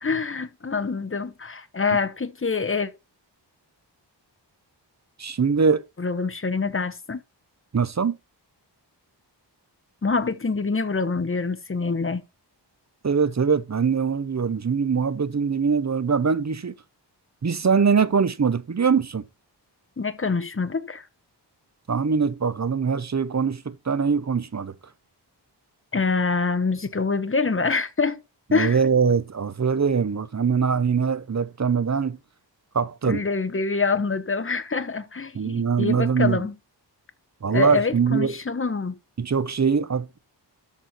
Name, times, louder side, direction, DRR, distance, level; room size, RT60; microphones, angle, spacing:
voice 1, 0.0-2.9 6.0-7.2 10.0-12.2 20.0-21.1 25.9-28.2 28.5-28.8 33.1-36.5 37.5-39.0, left 4 dB, 30° left, 1.0 m, -25 dB
voice 2, 5.2-5.8 7.7-8.2 13.0-16.8 17.4-19.2 21.9-24.7 28.5-32.2 32.7-33.3 35.3-36.4 37.4-38.4 39.2-40.2, right 6 dB, 40° right, 0.8 m, -22 dB
13.0 x 4.4 x 4.4 m
wide cardioid pair, 85°, 43 cm